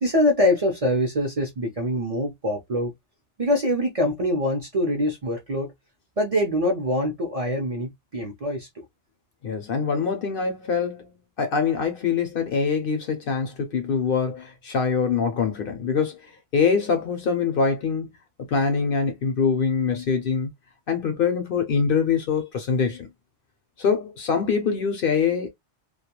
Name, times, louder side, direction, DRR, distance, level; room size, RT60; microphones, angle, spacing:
voice 1, 0.0-2.9 3.4-5.7 6.2-8.8, left 1 dB, 40° right, 0.5 m, -24 dB
voice 2, 9.4-16.2 16.5-18.1 18.5-20.5 20.9-23.1 23.8-25.5, left 5 dB, 60° left, 0.7 m, -24 dB
2.3 x 2.2 x 2.8 m
omnidirectional pair, 1.2 m